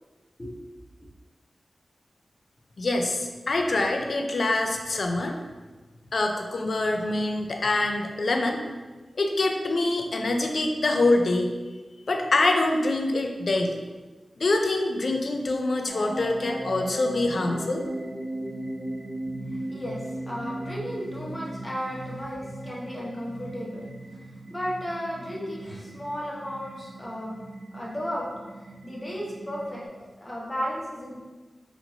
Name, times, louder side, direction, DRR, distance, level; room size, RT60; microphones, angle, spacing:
voice 1, 2.8-5.3 6.1-8.6 9.2-11.5 12.1-13.8 14.4-17.8, left 2 dB, 65° left, 3 dB, 0.4 m, -25 dB
sound 1, 15.9-29.9, right 1 dB, 50° right, 1.2 m, -38 dB
voice 2, 19.5-27.4 27.7-28.3 28.6-31.2, equal, 25° left, -5 dB, 1.0 m, -34 dB
4.4 x 2.6 x 2.8 m, 1.3 s
wide cardioid pair, 65°, 0 cm